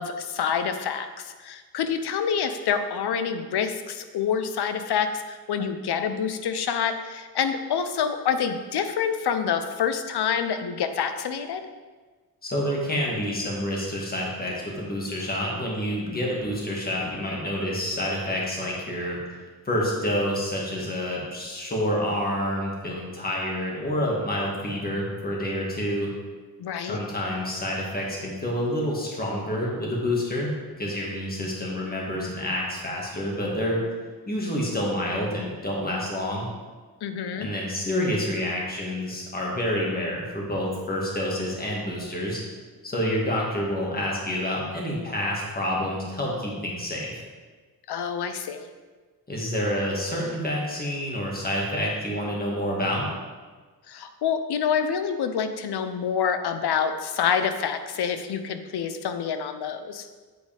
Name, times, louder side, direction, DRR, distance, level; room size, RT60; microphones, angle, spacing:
voice 1, 0.0-11.6 26.6-27.0 37.0-37.5 47.9-48.7 53.9-60.1, left 7 dB, 80° left, 9 dB, 0.7 m, -27 dB
voice 2, 12.4-19.2 19.7-26.1 26.9-33.8 34.3-36.5 37.4-42.4 42.8-47.2 49.3-53.1, left 1 dB, 25° left, -3 dB, 1.7 m, -28 dB
8.1 x 8.0 x 3.4 m, 1.4 s
wide cardioid pair, 170°, 39 cm